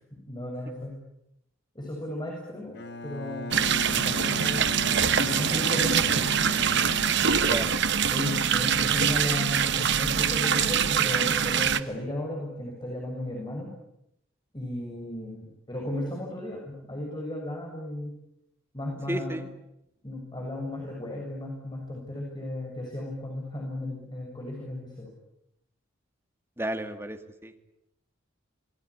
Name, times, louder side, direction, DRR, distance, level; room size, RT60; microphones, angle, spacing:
voice 1, 0.3-1.0 1.7-2.8 3.0-4.8 5.2-6.2 7.2-7.7 8.1-13.7 14.5-18.1 18.7-19.4 20.0-25.1, left 1 dB, 20° left, -1 dB, 6.9 m, -35 dB
Bowed string instrument, 2.7-8.2, left 2 dB, 60° left, 1.5 m, -38 dB
sound 1, 3.5-11.8, right 7 dB, 60° right, 1.3 m, -24 dB
voice 2, 19.1-19.5 26.6-27.6, right 1 dB, 15° right, 6 dB, 2.4 m, -32 dB
27.5 x 21.0 x 9.9 m, 0.82 s
head